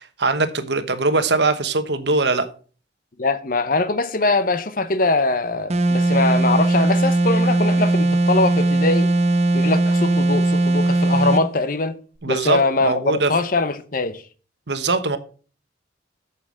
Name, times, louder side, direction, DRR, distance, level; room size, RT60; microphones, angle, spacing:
voice 1, 0.0-2.5 12.2-13.3 14.7-15.2, right 3 dB, 65° right, 1.2 m, -21 dB
voice 2, 3.2-9.1 9.5-12.0 12.3-14.2, left 3 dB, 45° left, 0.8 m, -22 dB
sound 1, 5.7-11.5, right 2 dB, 35° right, 0.9 m, -19 dB
8.6 x 6.9 x 6.3 m
head